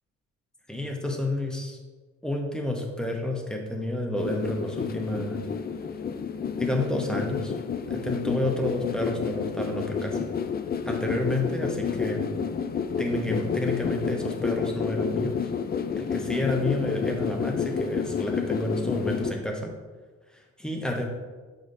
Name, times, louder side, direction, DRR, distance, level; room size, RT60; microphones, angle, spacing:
voice 1, 0.7-1.8 2.2-5.4 6.6-7.5 7.9-10.3 10.8-12.2 13.0-15.4 16.0-19.7 20.6-21.0, left 1 dB, ahead, 1 dB, 1.0 m, -30 dB
sound 1, 4.2-19.3, left 6 dB, 35° left, 0.4 m, -30 dB
7.1 x 5.0 x 2.6 m, 1.4 s
cardioid pair, 90°, 30 cm